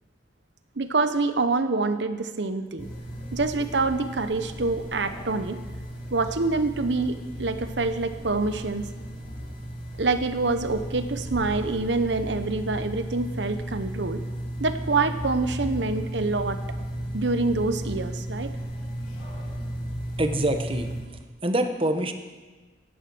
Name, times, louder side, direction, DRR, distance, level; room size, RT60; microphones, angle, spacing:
voice 1, 0.8-2.9 3.3-5.6 6.1-8.9 10.0-14.2 14.6-16.6 17.1-18.5, right 3 dB, 75° right, 10 dB, 1.0 m, -26 dB
sound 1, 2.8-21.0, equal, 80° left, 6.0 m, -35 dB
voice 2, 20.2-20.9 21.4-22.1, right 1 dB, 30° right, 7 dB, 1.1 m, -25 dB
15.0 x 10.5 x 6.1 m, 1.3 s
head